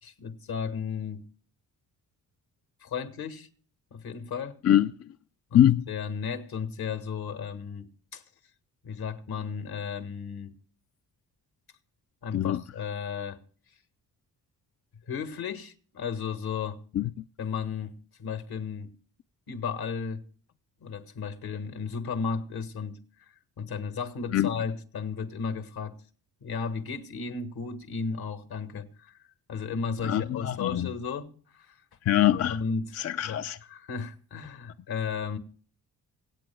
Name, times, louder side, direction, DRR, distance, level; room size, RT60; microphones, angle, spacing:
voice 1, 0.0-1.3 2.8-3.5 3.9-4.6 5.5-8.2 8.8-10.5 12.2-13.4 15.1-16.8 17.4-18.9 19.5-20.2 20.8-23.0 23.3-26.0 26.4-29.2 29.5-31.3 31.5-31.8 32.3-33.4 33.7-35.4, left 5 dB, 70° left, 1.6 m, -34 dB
voice 2, 4.6-5.1 5.5-5.9 12.3-12.6 16.9-17.1 24.3-24.6 30.0-30.9 32.0-32.6 32.9-33.6, left 11 dB, 40° left, 0.4 m, -23 dB
25.0 x 8.5 x 2.2 m
cardioid pair, 80°, 39 cm